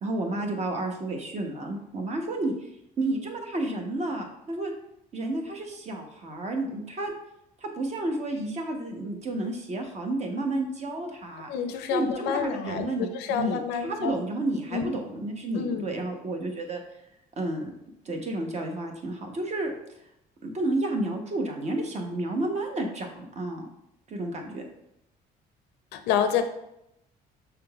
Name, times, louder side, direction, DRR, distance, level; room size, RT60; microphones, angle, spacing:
voice 1, 0.0-2.7 3.0-4.7 5.1-7.1 7.6-11.5 11.9-16.8 17.4-17.7 18.0-19.7 20.4-23.7 24.1-24.6, right 2 dB, 40° right, 3 dB, 0.9 m, -31 dB
voice 2, 11.5-14.2 14.7-14.9 15.5-15.9 25.9-26.4, left 7 dB, 90° left, 7 dB, 0.5 m, -28 dB
5.5 x 3.7 x 2.3 m, 0.82 s
cardioid pair, 110°, 17 cm